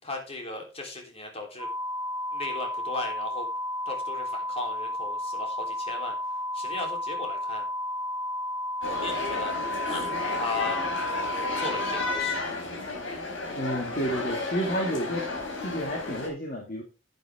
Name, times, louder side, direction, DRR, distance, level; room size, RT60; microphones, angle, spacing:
voice 1, 0.0-1.7 2.3-3.5 3.8-6.2 6.5-7.6 8.8-9.5 9.8-10.9 11.5-12.4, left 3 dB, 30° left, 2 dB, 3.4 m, -36 dB
sound 1, 1.6-12.2, left 1 dB, 5° right, 2.6 m, -32 dB
sound 2, 8.8-16.3, left 3 dB, 75° left, 4.3 m, -33 dB
voice 2, 13.5-16.8, equal, 45° left, 0 dB, 2.1 m, -31 dB
10.5 x 9.3 x 3.5 m, 0.31 s
head